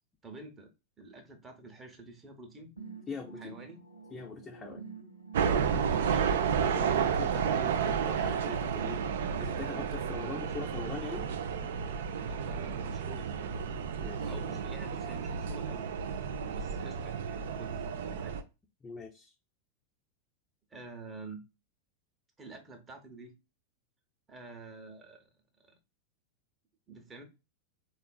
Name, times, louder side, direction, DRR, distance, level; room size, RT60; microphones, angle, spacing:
voice 1, 0.2-0.7 1.0-2.7 3.4-3.8 5.9-6.3 12.2-13.6 14.2-15.9 16.2-18.4 20.7-21.4 22.4-23.3 24.3-25.2 25.6-25.7 26.9-27.2, right 3 dB, 20° right, 0.8 m, -48 dB
sound 1, 2.8-10.8, right 4 dB, 80° left, 0.8 m, -49 dB
voice 2, 3.1-3.5 4.1-4.8 6.7-9.0 9.4-11.3 14.0-14.3 18.8-19.3, left 5 dB, 15° left, 0.5 m, -42 dB
sound 2, 5.3-18.4, right 7 dB, 60° right, 0.3 m, -32 dB
3.6 x 2.4 x 2.3 m
figure-of-eight pair, 90°, 0 cm